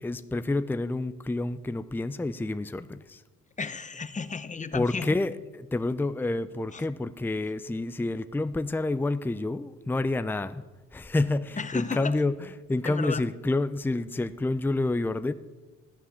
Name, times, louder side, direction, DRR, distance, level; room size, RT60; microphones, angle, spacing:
voice 1, 0.0-3.2 4.7-10.6 10.9-15.3, left 2 dB, 5° left, 12 dB, 0.5 m, -29 dB
voice 2, 3.6-5.1 6.7-6.8 11.6-12.2 12.8-13.2, left 5 dB, 25° left, 12 dB, 0.9 m, -33 dB
14.0 x 9.5 x 7.3 m, 1.2 s
cardioid pair, 90°, 30 cm